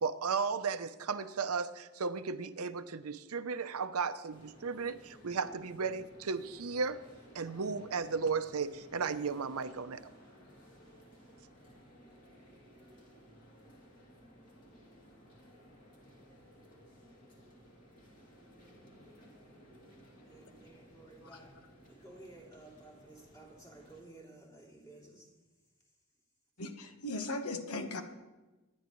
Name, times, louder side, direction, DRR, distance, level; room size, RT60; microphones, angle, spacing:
voice 1, 0.0-7.0 7.3-10.0, right 5 dB, 85° right, 0.7 m, -35 dB
sound 1, 4.3-24.0, equal, 40° left, 2.8 m, -58 dB
voice 2, 20.3-21.5 21.9-25.3 27.6-27.7, right 2 dB, 15° left, 3.1 m, -54 dB
voice 3, 26.6-28.0, left 2 dB, 90° left, 1.3 m, -38 dB
24.5 x 10.5 x 3.1 m
head